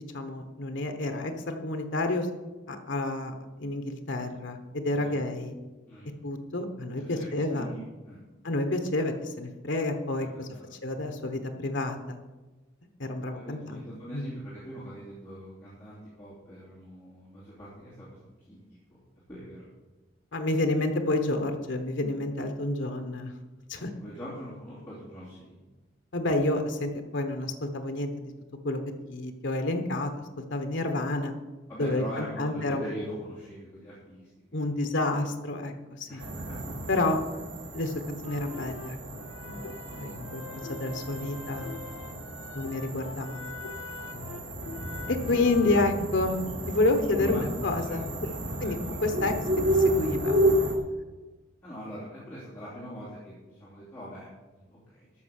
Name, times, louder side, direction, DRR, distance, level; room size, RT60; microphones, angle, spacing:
voice 1, 0.1-2.3 2.7-3.3 3.6-5.5 6.2-7.7 8.4-10.5 10.8-12.2 13.0-13.8 14.1-14.2 20.3-23.3 23.7-23.9 26.1-28.3 28.6-28.8 29.1-30.1 30.4-31.3 31.8-32.8 34.5-36.2 36.9-37.2 37.7-39.0 39.4-39.6 39.9-41.8 42.5-43.5 45.1-46.4 46.7-48.0 48.6-49.3 49.8-50.4, left 2 dB, 65° left, 6 dB, 1.1 m, -29 dB
voice 2, 7.0-8.2 10.2-10.8 13.3-19.0 19.3-19.7 23.8-25.6 31.7-34.8 36.1-36.8 39.9-40.0 41.1-41.8 44.0-44.2 46.8-49.0 51.6-55.1, equal, 15° left, -10 dB, 2.8 m, -43 dB
sound 1, 36.2-50.8, right 1 dB, 65° right, 1.5 m, -32 dB
sound 2, 38.2-45.8, left 5 dB, 85° left, 0.6 m, -43 dB
13.0 x 5.8 x 6.5 m, 1.2 s
head